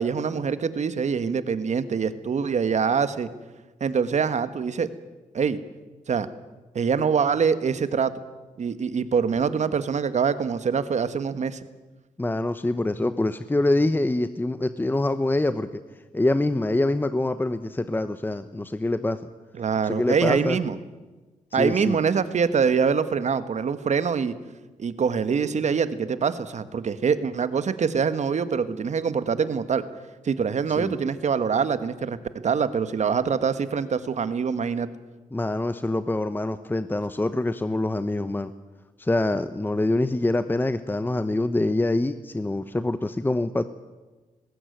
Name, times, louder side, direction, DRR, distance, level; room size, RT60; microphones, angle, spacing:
voice 1, 0.0-3.3 3.8-4.9 5.3-5.6 6.1-6.3 6.7-8.1 8.6-11.6 19.6-20.8 21.5-24.3 24.8-29.8 30.2-32.2 32.4-34.9, right 6 dB, 60° right, 13 dB, 1.5 m, -24 dB
voice 2, 12.2-15.8 16.1-19.2 19.8-20.6 21.6-22.0 30.7-30.9 35.3-38.5 39.0-43.6, left 2 dB, 15° left, 12 dB, 0.9 m, -25 dB
19.5 x 17.0 x 9.4 m, 1.2 s
cardioid pair, 75°, 14 cm